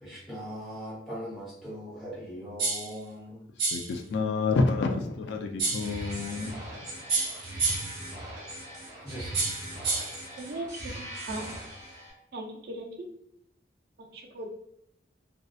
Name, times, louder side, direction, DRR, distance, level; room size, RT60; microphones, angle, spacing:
voice 1, 0.0-3.4 7.1-7.5 9.0-9.3, equal, ahead, 0.9 m, -40 dB
sound 1, 2.6-2.9 3.6-3.9 5.6-5.9 7.1-8.0 9.3-10.2, right 3 dB, 90° right, 1.0 m, -29 dB
voice 2, 3.7-6.5, left 3 dB, 75° left, 0.3 m, -28 dB
sound 2, 5.6-12.1, right 1 dB, 25° right, 1.2 m, -40 dB
voice 3, 10.4-10.7 11.3-11.5 12.3-12.9 14.0-14.5, right 2 dB, 55° right, 0.4 m, -37 dB
2.7 x 2.1 x 2.3 m
head